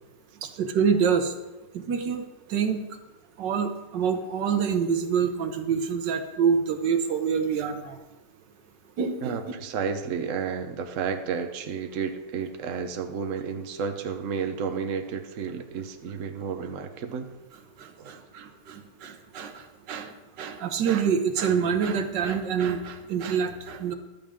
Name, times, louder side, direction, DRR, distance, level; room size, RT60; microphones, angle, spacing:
voice 1, 0.4-1.3 1.9-2.2 2.5-2.8 3.4-8.0 9.0-9.4 17.8-23.9, right 6 dB, 80° right, 7 dB, 1.7 m, -26 dB
voice 2, 9.2-17.3 18.0-18.2, right 6 dB, 50° right, 6 dB, 1.2 m, -32 dB
14.0 x 12.5 x 3.7 m, 1.1 s
omnidirectional pair, 1.9 m